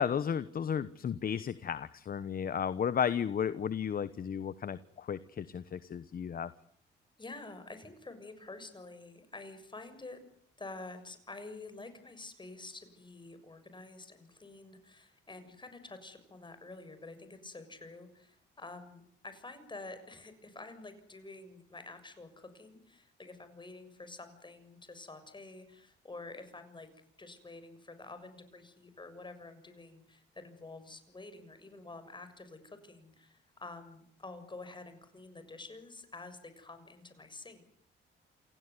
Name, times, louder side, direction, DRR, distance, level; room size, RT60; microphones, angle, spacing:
voice 1, 0.0-6.5, left 8 dB, 45° left, 15 dB, 1.1 m, -33 dB
voice 2, 7.2-10.3 10.6-26.9 27.2-37.7, left 3 dB, 25° left, 10 dB, 6.8 m, -48 dB
28.5 x 17.0 x 9.8 m, 0.65 s
cardioid pair, 90°, 20 cm